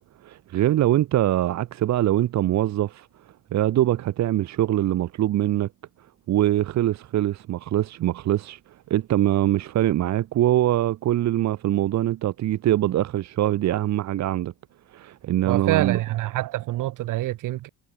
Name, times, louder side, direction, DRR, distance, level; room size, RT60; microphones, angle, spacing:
voice 1, 0.2-3.1 3.5-5.7 6.3-8.6 8.9-14.5 14.9-16.0, right 13 dB, 60° right, 2.9 m, -23 dB
voice 2, 15.5-17.7, right 16 dB, 80° right, 5.7 m, -26 dB
cardioid pair, 155°, 31 cm